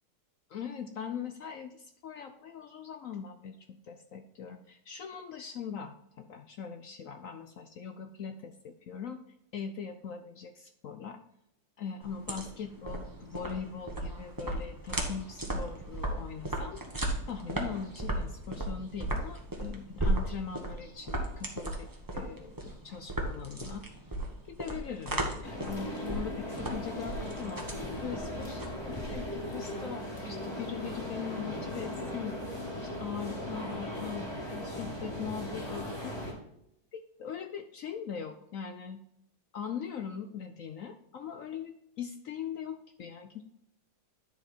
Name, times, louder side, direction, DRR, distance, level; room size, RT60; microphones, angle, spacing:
voice 1, 0.5-9.2 9.5-11.2 11.8-16.8 17.3-21.9 22.1-23.9 24.5-27.7 28.0-32.4 32.8-36.2 36.9-39.0 39.5-43.4, left 7 dB, 70° left, 7 dB, 0.7 m, -41 dB
sound 1, 12.0-29.5, right 1 dB, 15° right, 1.0 m, -36 dB
sound 2, 25.4-36.3, left 1 dB, 15° left, 2.1 m, -38 dB
10.5 x 4.8 x 4.3 m, 0.78 s
omnidirectional pair, 2.1 m